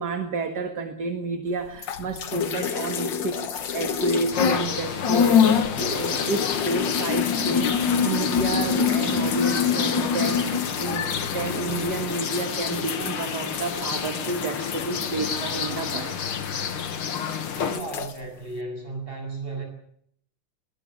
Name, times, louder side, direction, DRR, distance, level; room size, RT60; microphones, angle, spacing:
voice 1, 0.0-16.2, right 3 dB, 50° right, 7 dB, 2.3 m, -30 dB
sound 1, 1.8-4.7 5.0-16.9 17.2-18.1, left 7 dB, 60° left, 2.0 m, -26 dB
sound 2, 4.3-17.8, left 7 dB, 85° left, 2.5 m, -30 dB
voice 2, 17.6-19.6, right 3 dB, 25° right, 3 dB, 7.8 m, -34 dB
21.5 x 19.5 x 8.7 m, 0.68 s
omnidirectional pair, 2.3 m